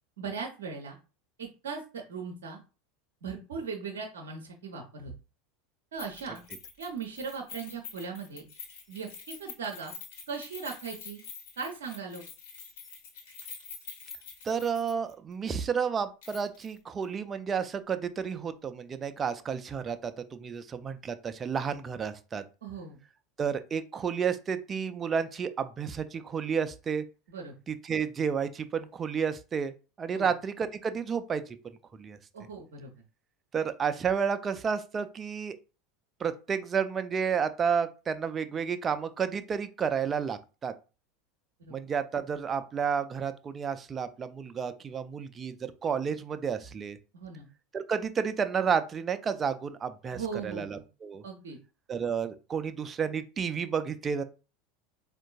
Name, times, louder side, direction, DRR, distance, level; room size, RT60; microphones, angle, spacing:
voice 1, 0.2-1.0 1.4-2.6 3.2-5.1 5.9-6.4 6.8-8.4 8.9-9.9 10.3-11.2 11.6-12.2 22.6-23.0 27.3-27.5 30.1-30.3 32.3-32.9 41.6-41.8 47.1-47.5 50.1-50.8 51.2-51.6, right 5 dB, 70° right, 3 dB, 0.6 m, -38 dB
Keys jangling, 6.0-15.1 15.4-15.5 16.2-16.7 17.0-17.1, left 6 dB, 65° left, 1.3 m, -46 dB
voice 2, 14.4-22.4 23.4-27.0 27.7-31.6 32.0-32.2 33.5-35.6 36.2-40.7 41.7-47.0 47.7-51.2 51.9-54.2, right 6 dB, 25° right, 10 dB, 0.4 m, -31 dB
4.4 x 2.5 x 2.3 m, 0.33 s
figure-of-eight pair, 80°, 0 cm